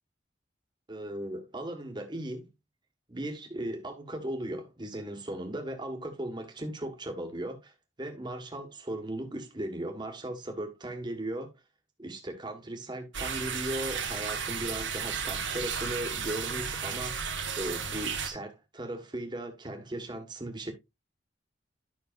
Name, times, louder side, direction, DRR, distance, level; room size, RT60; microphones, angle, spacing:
voice 1, 0.9-2.5 3.1-7.7 8.0-11.5 12.0-17.3 17.5-20.7, right 1 dB, 25° right, 1.5 m, -37 dB
sound 1, 13.1-18.3, right 6 dB, 85° right, 1.7 m, -34 dB
12.0 x 5.9 x 2.5 m
head